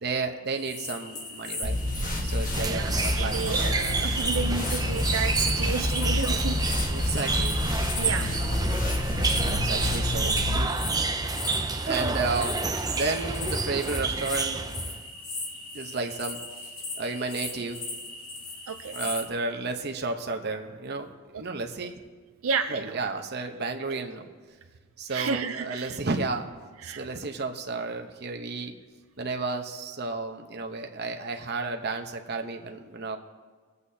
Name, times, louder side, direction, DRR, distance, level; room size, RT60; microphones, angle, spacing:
voice 1, 0.0-1.8 2.2-3.6 6.5-7.6 8.1-8.4 9.0-10.7 11.8-12.6 12.9-14.6 15.7-16.4 17.0-17.8 18.9-21.1 21.4-21.9 22.7-24.3 25.0-26.5 26.8-28.8 29.2-33.2, right 3 dB, 50° right, 4 dB, 0.9 m, -32 dB
sound 1, 0.6-19.3, left 3 dB, 85° left, 2.5 m, -38 dB
sound 2, 1.6-10.6, left 1 dB, 40° left, 1.4 m, -28 dB
sound 3, 2.5-15.0, right 3 dB, 20° right, 0.5 m, -29 dB
voice 2, 2.7-6.8 8.0-8.4 18.7-19.0 21.3-21.4 21.8-21.9 22.4-23.0 23.9-24.0 25.1-26.0 26.8-27.0, right 5 dB, 85° right, 6 dB, 0.6 m, -32 dB
22.5 x 8.2 x 2.8 m, 1.5 s
head